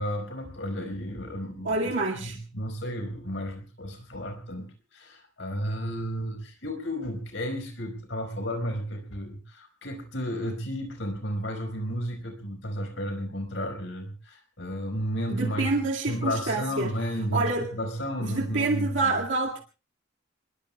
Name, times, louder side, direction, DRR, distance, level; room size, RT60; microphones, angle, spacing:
voice 1, 0.0-15.7 16.1-19.1, equal, 65° left, 4 dB, 5.0 m, -33 dB
voice 2, 1.6-2.4 15.3-16.9 17.3-17.7 18.2-19.6, right 3 dB, 65° right, 0 dB, 2.0 m, -27 dB
29.5 x 20.5 x 2.3 m, 0.34 s
head